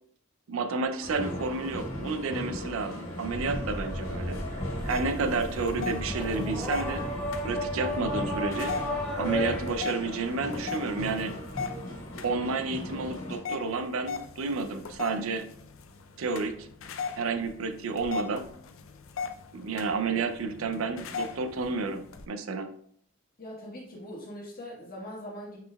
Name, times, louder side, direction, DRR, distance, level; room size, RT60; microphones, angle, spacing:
voice 1, 0.5-4.4 4.8-7.0 7.4-8.7 9.2-11.4 12.2-15.5 16.2-16.7 17.1-18.5 19.5-22.7, right 4 dB, 75° right, 9 dB, 0.5 m, -31 dB
sound 1, 1.0-13.4, equal, 85° left, 1.4 m, -38 dB
sound 2, 3.2-9.7, left 1 dB, 5° left, 0.7 m, -33 dB
sound 3, 4.8-22.2, left 5 dB, 70° left, 0.4 m, -40 dB
voice 2, 23.4-25.6, equal, 45° left, -3 dB, 1.4 m, -41 dB
5.3 x 4.0 x 2.3 m, 0.66 s
head